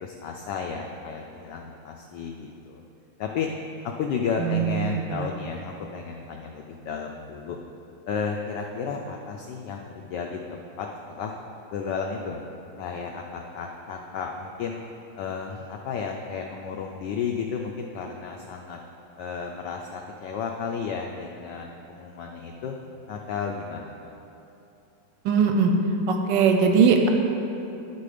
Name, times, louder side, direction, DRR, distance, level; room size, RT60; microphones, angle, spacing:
voice 1, 0.0-2.8 3.2-3.5 3.8-7.6 8.1-11.3 11.7-12.4 12.8-14.8 15.2-18.8 19.2-22.7 23.1-24.1, left 6 dB, 80° left, 2 dB, 0.9 m, -33 dB
voice 2, 4.4-5.3 25.2-25.7 26.1-27.1, right 5 dB, 70° right, 4 dB, 1.1 m, -21 dB
11.0 x 4.3 x 4.9 m, 2.9 s
omnidirectional pair, 2.4 m